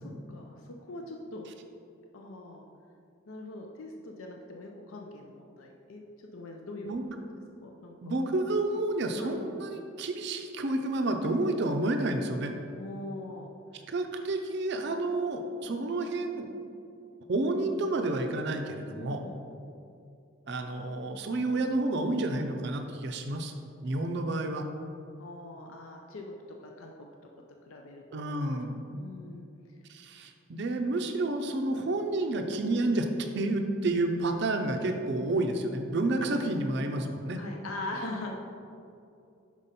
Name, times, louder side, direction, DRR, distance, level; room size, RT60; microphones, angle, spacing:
voice 1, 0.0-1.5 2.1-2.7 3.3-6.0 6.3-6.9 7.6-8.0 9.2-9.4 12.8-13.5 18.9-19.4 25.2-26.3 26.6-26.9 27.6-28.3 28.9-29.5 37.4-38.3, left 2 dB, 75° left, 2 dB, 0.5 m, -42 dB
voice 2, 8.0-12.5 13.7-16.5 17.3-19.2 20.5-23.5 23.8-24.7 28.1-29.0 29.9-33.1 33.3-37.4, right 2 dB, 50° right, 4 dB, 0.4 m, -30 dB
6.1 x 5.3 x 4.2 m, 2.5 s
head